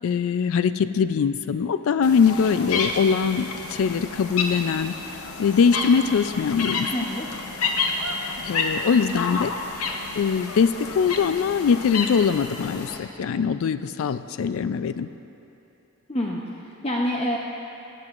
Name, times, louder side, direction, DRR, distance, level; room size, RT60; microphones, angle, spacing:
voice 1, 0.0-5.0 5.4-6.9 8.4-9.5 10.2-15.1, left 6 dB, 70° left, 12 dB, 0.3 m, -22 dB
sound 1, 2.0-13.0, left 4 dB, 85° left, 0.8 m, -30 dB
voice 2, 6.9-7.3 16.1-17.4, equal, 25° left, -2 dB, 0.6 m, -27 dB
22.0 x 7.7 x 2.5 m, 2.9 s
head